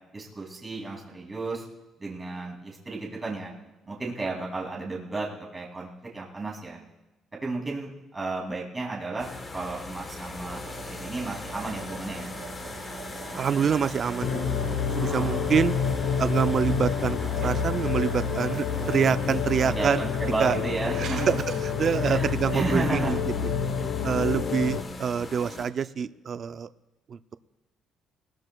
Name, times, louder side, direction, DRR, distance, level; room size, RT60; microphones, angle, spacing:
voice 1, 0.1-1.6 2.0-3.5 3.9-6.8 7.4-12.4 15.0-15.5 19.7-21.4 22.0-23.2 23.8-24.0, right 3 dB, 15° right, -3 dB, 2.6 m, -33 dB
sound 1, 9.2-25.7, left 3 dB, 25° left, 1.1 m, -39 dB
sound 2, 10.3-22.0, right 7 dB, 75° right, 4.9 m, -43 dB
voice 2, 13.3-14.6 15.0-15.8 16.2-20.0 20.4-20.6 21.0-21.4 21.6-23.5 24.0-26.7 27.1-27.2, right 7 dB, 35° right, 13 dB, 0.3 m, -26 dB
sound 3, 14.2-24.8, left 7 dB, 80° left, 0.8 m, -28 dB
19.5 x 19.5 x 2.3 m, 1.1 s
cardioid pair, 165°, 0 cm